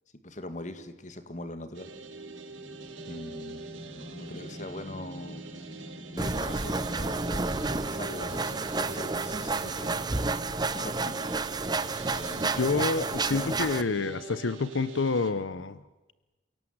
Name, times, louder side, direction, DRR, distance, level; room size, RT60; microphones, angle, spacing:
voice 1, 0.2-1.9 3.1-5.4 6.1-10.0 10.7-11.2 12.0-12.8 13.3-13.5, left 1 dB, 40° left, 10 dB, 1.9 m, -41 dB
sound 1, 1.7-15.3, right 3 dB, 80° right, 2.4 m, -44 dB
sound 2, 1.9-14.1, equal, 20° left, 1.2 m, -49 dB
sound 3, 6.2-13.8, right 3 dB, 20° right, 0.7 m, -30 dB
voice 2, 12.5-15.8, left 4 dB, 85° left, 16 dB, 0.7 m, -28 dB
29.0 x 17.5 x 7.9 m, 1.1 s
head